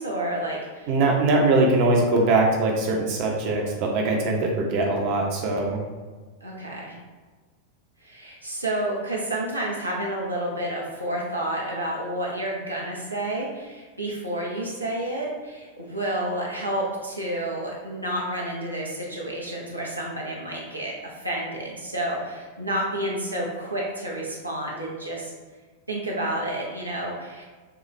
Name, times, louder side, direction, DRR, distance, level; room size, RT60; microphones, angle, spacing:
voice 1, 0.0-0.9 6.4-7.0 8.0-25.3 25.9-27.5, right 1 dB, 85° right, -4 dB, 0.8 m, -30 dB
voice 2, 0.9-5.8, right 2 dB, 45° right, -1 dB, 0.8 m, -22 dB
6.8 x 2.4 x 3.1 m, 1.4 s
figure-of-eight pair, 90°, 0 cm